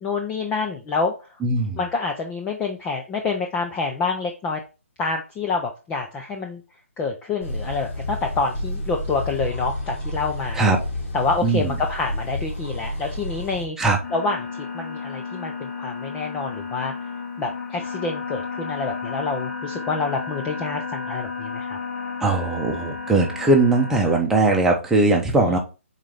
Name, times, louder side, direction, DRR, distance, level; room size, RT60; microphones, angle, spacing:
voice 1, 0.0-1.3 1.8-4.6 5.0-6.6 7.0-10.7 11.1-13.8 14.1-14.5 14.7-16.9 17.4-21.8 25.4-25.5, left 4 dB, 15° left, 2 dB, 0.6 m, -27 dB
voice 2, 1.4-1.8 10.6-10.8 11.4-11.6 13.8-14.0 22.2-25.6, right 2 dB, 5° right, 0 dB, 1.0 m, -19 dB
sound 1, 7.4-13.7, left 1 dB, 65° left, 3.1 m, -30 dB
sound 2, 14.0-24.2, left 5 dB, 45° left, 2.2 m, -33 dB
7.3 x 4.2 x 3.4 m, 0.31 s
hypercardioid pair, 150°, 8 cm